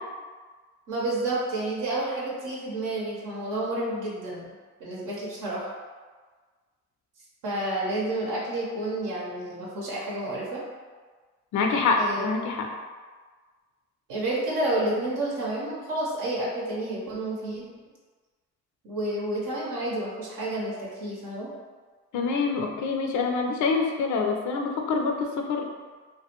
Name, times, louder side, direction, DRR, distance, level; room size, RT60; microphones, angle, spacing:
voice 1, 0.9-4.4 4.8-5.7 7.4-10.6 12.0-12.2 14.1-17.8 18.8-21.5, right 1 dB, 75° right, -5 dB, 0.7 m, -30 dB
voice 2, 11.5-12.7 22.1-25.7, left 4 dB, 65° left, 2 dB, 0.4 m, -26 dB
2.2 x 2.1 x 2.8 m, 1.4 s
supercardioid pair, 60°, 32 cm